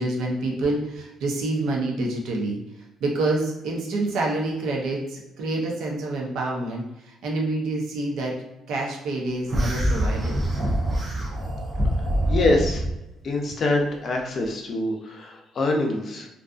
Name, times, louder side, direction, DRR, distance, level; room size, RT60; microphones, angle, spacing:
voice 1, 0.0-8.4 8.7-10.4, right 2 dB, 75° right, -1 dB, 0.6 m, -27 dB
sound 1, 9.5-12.9, right 1 dB, 30° right, 0.5 m, -24 dB
voice 2, 12.3-12.8 13.2-16.3, left 2 dB, 40° left, 1 dB, 0.5 m, -24 dB
2.5 x 2.4 x 2.4 m, 0.94 s
cardioid pair, 140°, 0 cm